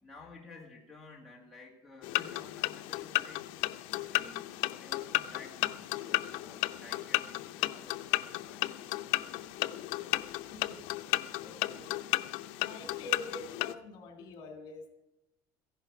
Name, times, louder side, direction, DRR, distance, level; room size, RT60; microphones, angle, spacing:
voice 1, 0.0-3.5 3.9-9.5 11.4-11.9, left 3 dB, ahead, 2 dB, 1.9 m, -53 dB
sound 1, 2.0-13.7, left 18 dB, 75° left, 0.6 m, -34 dB
voice 2, 10.3-10.8 11.4-11.9 12.6-14.9, left 2 dB, 50° left, 5 dB, 2.9 m, -46 dB
15.0 x 11.0 x 5.8 m, 0.91 s
cardioid pair, 170°, 10 cm